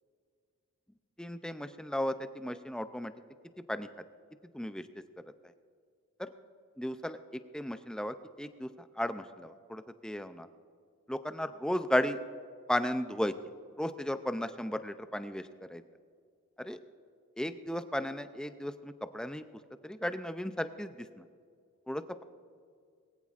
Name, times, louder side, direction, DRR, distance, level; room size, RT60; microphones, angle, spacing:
voice 1, 1.2-3.1 3.7-3.9 4.5-4.9 5.4-5.5 6.2-6.3 6.8-10.5 11.1-12.2 12.7-13.3 13.8-15.8 16.6-16.8 17.4-19.4 19.8-21.2 21.9-22.2, left 1 dB, 5° left, 10 dB, 0.4 m, -35 dB
21.5 x 15.5 x 2.5 m, 2.2 s
head